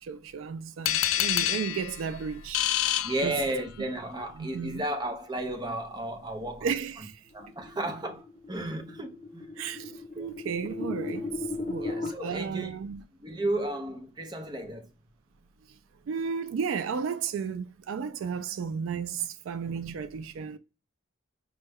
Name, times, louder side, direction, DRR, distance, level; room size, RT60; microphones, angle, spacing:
voice 1, 0.0-3.4 4.4-4.8 6.6-7.2 9.6-13.0 16.1-20.6, right 6 dB, 80° right, 0.3 m, -34 dB
sound 1, 0.8-3.9, left 11 dB, 85° left, 0.3 m, -28 dB
voice 2, 3.0-6.7 7.0-7.1 7.3-9.5 10.2-10.3 11.8-12.8 13.2-14.9, right 1 dB, 20° right, 0.6 m, -33 dB
sound 2, 7.4-12.1, left 3 dB, 30° left, 0.7 m, -36 dB
5.1 x 2.2 x 3.4 m
head